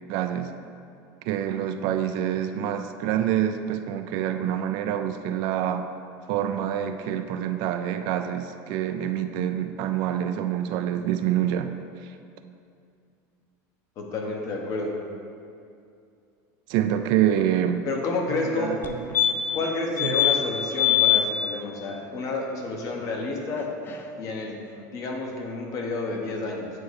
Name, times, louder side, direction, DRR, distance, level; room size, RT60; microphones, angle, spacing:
voice 1, 0.1-0.5 1.2-5.9 6.3-11.7 12.0-12.1 16.7-17.8 18.3-19.1 20.0-20.2, right 10 dB, 60° right, 8 dB, 0.4 m, -26 dB
voice 2, 14.0-15.0 17.8-18.8 19.5-23.7 24.2-24.6 24.9-26.7, left 3 dB, 45° left, 0 dB, 1.1 m, -30 dB
sound 1, 18.8-18.9 19.1-19.6 20.0-20.4 20.8-21.2 23.6-23.7 23.9-24.0, left 12 dB, 25° left, 0.4 m, -21 dB
9.2 x 3.1 x 4.7 m, 2.4 s
supercardioid pair, 140°, 8 cm